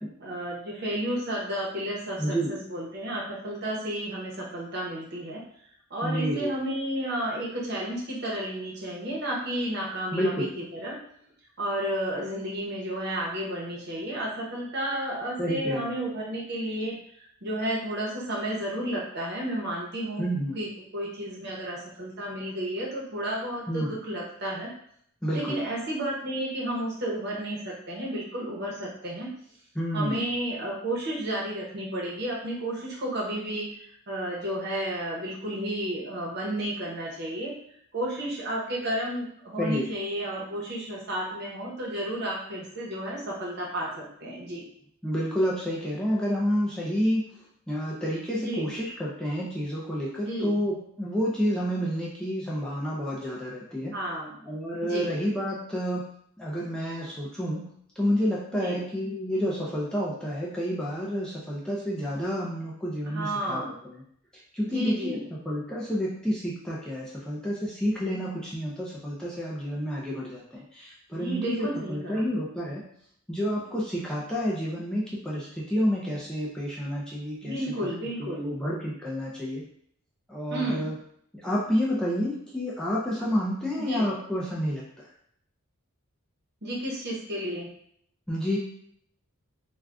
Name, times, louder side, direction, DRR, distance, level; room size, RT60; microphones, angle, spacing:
voice 1, 0.2-5.4 5.9-11.0 11.6-20.3 20.5-24.7 25.3-29.3 29.9-37.5 37.9-44.6 48.4-48.7 50.2-50.6 53.9-54.3 54.8-55.1 58.5-58.8 63.1-63.7 64.6-65.3 71.1-72.3 77.4-78.5 80.5-80.9 83.8-84.1 86.6-87.7, right 1 dB, 50° right, -4 dB, 0.9 m, -32 dB
voice 2, 2.2-2.5 6.0-6.5 10.1-10.5 15.4-15.8 20.2-20.6 23.7-24.0 25.2-25.6 29.8-30.3 39.6-39.9 45.0-47.3 47.7-54.0 54.4-56.1 56.4-57.7 58.0-63.6 64.5-65.2 65.5-72.9 73.3-77.9 78.2-79.6 80.3-80.9 81.3-84.8 88.3-88.6, equal, 5° left, -6 dB, 0.4 m, -29 dB
2.5 x 2.3 x 3.3 m, 0.67 s
head